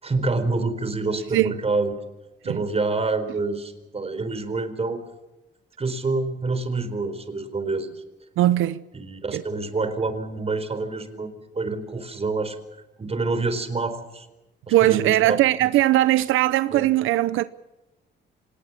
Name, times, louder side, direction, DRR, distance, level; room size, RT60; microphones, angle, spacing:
voice 1, 0.0-1.9 2.4-5.0 5.8-8.0 8.9-14.3 14.7-15.4 16.7-16.9, right 3 dB, 30° right, 4.3 m, -27 dB
voice 2, 8.4-8.8 9.3-9.4 14.7-17.4, right 15 dB, 90° right, 0.8 m, -20 dB
26.0 x 19.5 x 7.4 m
cardioid pair, 90°, 20 cm